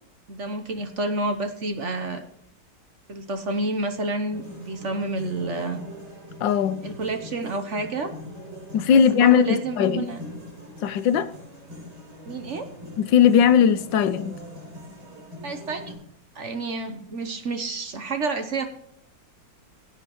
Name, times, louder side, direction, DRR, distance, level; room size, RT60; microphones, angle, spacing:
voice 1, 0.3-2.2 3.1-5.8 6.8-8.1 8.9-10.2 12.3-12.7 15.4-15.8 16.3-18.7, right 2 dB, 50° right, 1.2 m, -29 dB
sound 1, 4.3-15.9, left 1 dB, 65° right, 5.1 m, -41 dB
voice 2, 6.4-6.9 8.7-10.0 10.8-11.3 13.0-14.3, left 8 dB, 90° left, 1.5 m, -19 dB
19.0 x 8.9 x 3.1 m
omnidirectional pair, 2.0 m